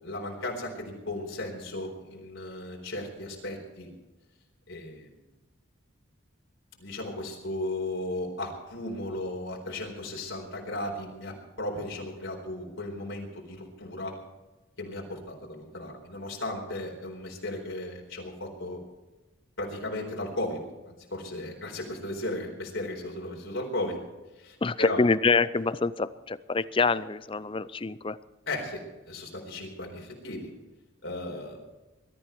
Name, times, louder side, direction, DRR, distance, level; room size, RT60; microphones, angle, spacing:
voice 1, 0.0-3.9 4.7-5.1 6.8-14.2 14.8-18.8 19.6-24.0 24.3-25.0 28.5-30.5 31.0-31.6, left 1 dB, 70° left, -1 dB, 4.1 m, -36 dB
voice 2, 24.6-28.2, left 4 dB, 25° left, 17 dB, 0.5 m, -26 dB
21.5 x 13.0 x 4.6 m, 1.1 s
head